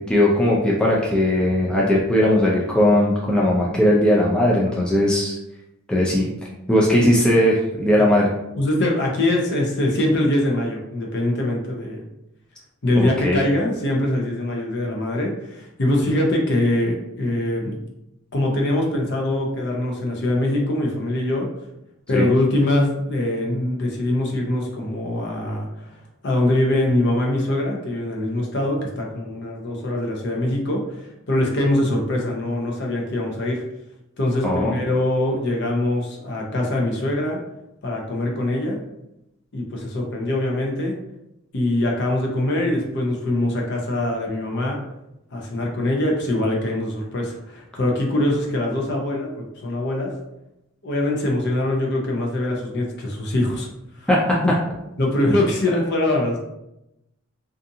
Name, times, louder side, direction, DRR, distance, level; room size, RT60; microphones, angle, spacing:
voice 1, 0.1-5.4 5.9-6.3 6.7-8.3 12.9-13.4 22.1-22.3 34.4-34.7 54.1-54.4, left 1 dB, 5° left, -4 dB, 0.3 m, -18 dB
voice 2, 8.6-12.0 12.8-17.8 18.3-21.5 22.1-26.0 26.2-33.6 34.2-37.4 37.8-38.8 39.5-41.0 41.5-44.8 45.3-50.2 50.8-53.7 54.0-54.1 55.0-56.4, left 1 dB, 50° left, 0 dB, 0.6 m, -23 dB
2.6 x 2.4 x 2.6 m, 0.86 s
head